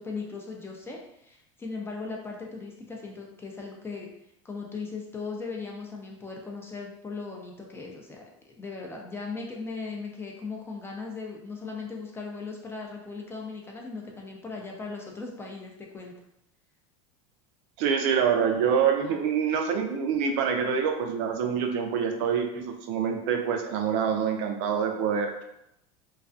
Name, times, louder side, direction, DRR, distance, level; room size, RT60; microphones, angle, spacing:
voice 1, 0.0-4.1 4.4-16.1, left 4 dB, 15° left, 0 dB, 0.4 m, -38 dB
voice 2, 17.8-25.4, right 7 dB, 65° right, 4 dB, 0.4 m, -26 dB
2.3 x 2.3 x 2.4 m, 0.81 s
supercardioid pair, 125°, 17 cm